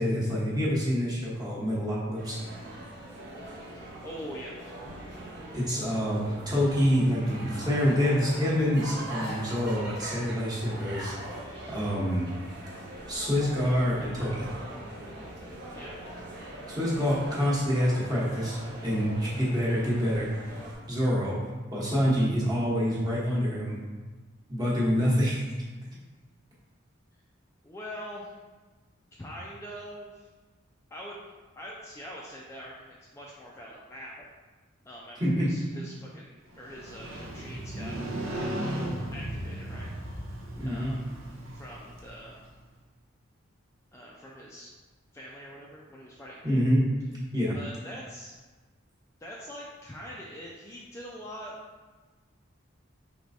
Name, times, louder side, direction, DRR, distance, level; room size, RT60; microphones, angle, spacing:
voice 1, 0.0-2.4 5.5-11.1 11.7-12.3 13.1-14.5 16.7-20.3 20.9-21.4 21.7-23.8 24.5-25.4 35.2-35.5 40.6-41.0 46.4-46.9 47.3-47.6, equal, 20° right, -7 dB, 1.0 m, -26 dB
sound 1, 2.2-20.8, right 1 dB, 55° right, 1.0 m, -42 dB
voice 2, 4.0-4.5 15.7-16.0 27.6-28.4 29.2-30.3 30.9-34.3 34.8-38.0 39.1-39.9 40.6-41.0 41.5-42.4 43.9-44.7 45.1-46.6 47.5-48.3 49.2-51.5, equal, 15° left, -4 dB, 0.3 m, -43 dB
Motorcycle, 36.5-42.5, right 1 dB, 75° right, 0.7 m, -36 dB
4.6 x 3.2 x 2.6 m, 1.3 s
head